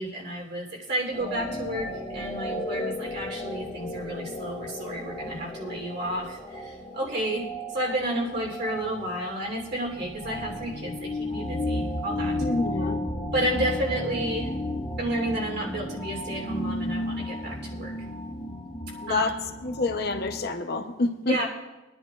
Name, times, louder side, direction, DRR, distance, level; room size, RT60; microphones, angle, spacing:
voice 1, 0.0-12.4 13.3-14.5 15.0-18.1 18.9-19.3 21.3-21.5, right 1 dB, 55° right, -1 dB, 3.2 m, -31 dB
sound 1, 1.1-20.5, left 1 dB, 20° left, 0.7 m, -34 dB
voice 2, 12.4-13.0 19.0-19.3 19.6-21.4, left 2 dB, 50° left, 6 dB, 0.7 m, -27 dB
23.5 x 10.5 x 2.4 m, 1.1 s
head